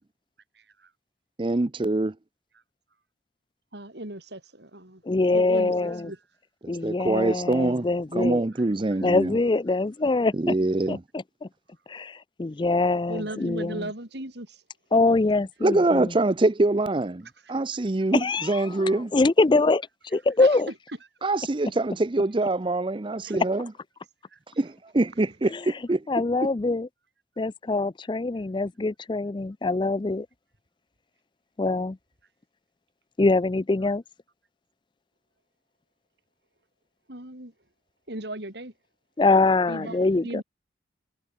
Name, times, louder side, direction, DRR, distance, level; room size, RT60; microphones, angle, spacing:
voice 1, 0.6-0.9 3.7-5.0 5.3-6.2 8.5-8.6 13.1-14.6 20.4-20.6 23.2-23.4 24.3-24.4 37.1-37.5 38.1-38.7 39.7-40.4, right 1 dB, 60° right, 5.4 m, -37 dB
voice 2, 1.4-2.1 6.8-7.9 8.1-9.4 10.3-11.0 15.6-19.1 21.2-23.7 24.6-26.0, right 2 dB, 25° right, 0.5 m, -24 dB
voice 3, 5.0-6.1 6.7-8.4 9.0-10.5 10.9-11.5 11.9-13.9 14.9-16.1 18.1-20.7 25.5-25.7 26.1-26.9 27.4-30.3 31.6-32.0 33.2-34.0 39.2-40.4, left 3 dB, 25° left, 0.4 m, -24 dB
head